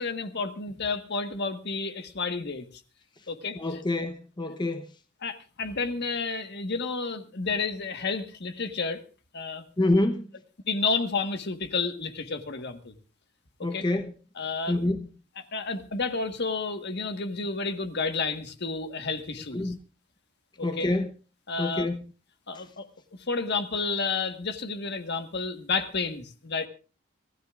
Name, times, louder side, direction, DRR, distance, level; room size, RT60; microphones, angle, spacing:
voice 1, 0.0-2.7 3.3-3.6 5.2-9.0 9.3-9.6 10.7-12.9 13.6-13.9 14.4-14.8 15.4-19.7 20.6-20.9 21.5-21.9 22.5-22.8 23.3-26.7, left 4 dB, 55° left, 1.5 m, -31 dB
voice 2, 3.5-4.9 9.8-10.3 13.6-14.1 14.7-15.1 19.5-19.8 20.6-21.1 21.6-22.0 22.5-22.6, left 2 dB, 20° left, 0.9 m, -27 dB
26.5 x 15.0 x 2.5 m
head